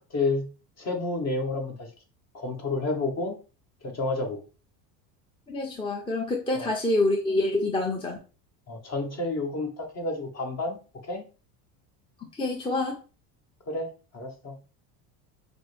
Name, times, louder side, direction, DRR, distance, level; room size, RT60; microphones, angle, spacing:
voice 1, 0.1-0.5 0.8-1.9 2.3-3.3 3.8-4.4 6.5-6.7 8.7-10.8 11.0-11.2 13.7-14.6, left 3 dB, 35° left, 3 dB, 1.2 m, -30 dB
voice 2, 5.5-8.2 12.3-13.0, left 2 dB, 10° left, 0 dB, 0.6 m, -26 dB
5.9 x 2.0 x 3.4 m, 0.34 s
supercardioid pair, 105°, 48 cm